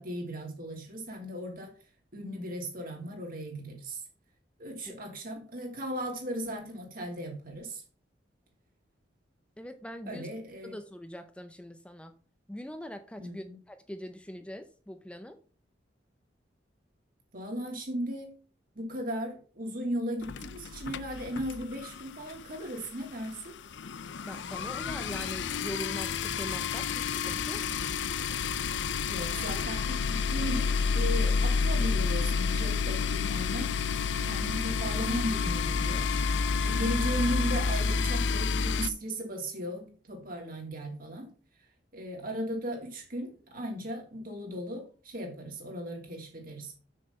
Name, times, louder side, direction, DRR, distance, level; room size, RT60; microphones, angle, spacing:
voice 1, 0.0-1.7 2.1-4.0 4.6-7.8 10.1-10.7 13.2-13.5 17.3-18.3 18.7-23.5 29.0-33.7 34.2-36.1 36.6-41.3 41.9-46.7, equal, 55° right, 2.8 m, -36 dB
voice 2, 9.6-10.3 10.6-12.2 12.5-15.4 24.2-27.7, equal, 5° left, 0.5 m, -42 dB
sound 1, 20.2-22.0 22.3-22.5 22.8-22.9 23.1-38.9, left 5 dB, 85° left, 0.5 m, -29 dB
sound 2, 29.2-38.2, left 4 dB, 40° left, 1.9 m, -47 dB
6.5 x 6.4 x 5.4 m
head